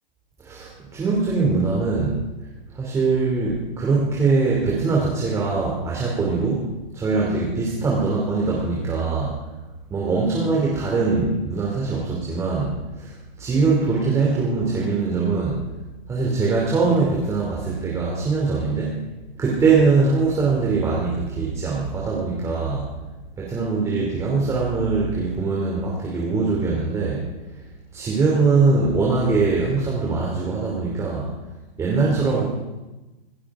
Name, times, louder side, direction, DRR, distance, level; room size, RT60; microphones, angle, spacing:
voice 1, 0.4-2.3 2.7-9.4 9.9-13.1 13.4-15.7 16.1-19.0 19.4-22.9 23.4-27.3 27.9-31.3 31.8-32.5, right 4 dB, 10° right, -4 dB, 2.7 m, -22 dB
25.5 x 15.0 x 3.6 m, 1.1 s
hypercardioid pair, 150°, 29 cm